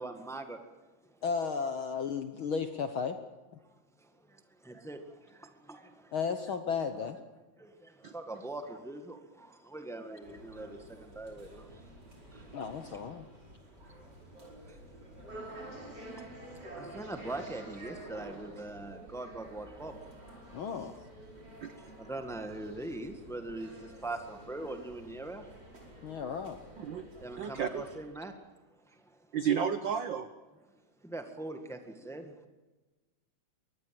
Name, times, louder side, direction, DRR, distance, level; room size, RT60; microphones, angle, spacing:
voice 1, 0.0-1.2 3.6-6.1 7.0-7.1 7.6-12.6 13.8-15.0 15.9-20.4 20.8-20.9 21.6-26.0 27.2-28.4 28.7-29.4 30.7-32.5, right 2 dB, ahead, 6 dB, 0.9 m, -43 dB
voice 2, 1.2-3.2 6.1-7.2 12.5-13.3 20.5-20.9 26.0-26.6, left 6 dB, 60° left, 8 dB, 1.4 m, -34 dB
sound 1, 10.2-28.0, right 1 dB, 30° right, 5.6 m, -50 dB
voice 3, 27.4-27.8 29.3-30.3, right 8 dB, 90° right, 11 dB, 1.0 m, -31 dB
23.5 x 19.0 x 7.7 m, 1.2 s
omnidirectional pair, 3.4 m